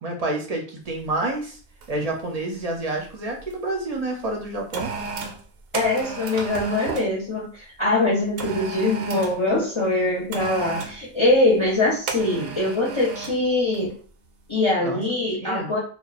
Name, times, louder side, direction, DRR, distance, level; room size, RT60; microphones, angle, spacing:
voice 1, 0.0-1.6 1.9-4.9 12.3-12.6 14.8-15.0 15.3-15.7, right 2 dB, 40° right, 1 dB, 0.8 m, -29 dB
sound 1, 1.0-1.2 1.8-2.1 2.4-3.5 4.2-7.1 8.4-9.4 10.3-11.0 12.1-13.4 13.7-14.0, right 4 dB, 70° right, 0.8 m, -34 dB
voice 2, 5.7-13.9 14.5-15.8, left 2 dB, 30° left, -4 dB, 0.8 m, -23 dB
2.8 x 2.3 x 4.0 m, 0.42 s
omnidirectional pair, 1.1 m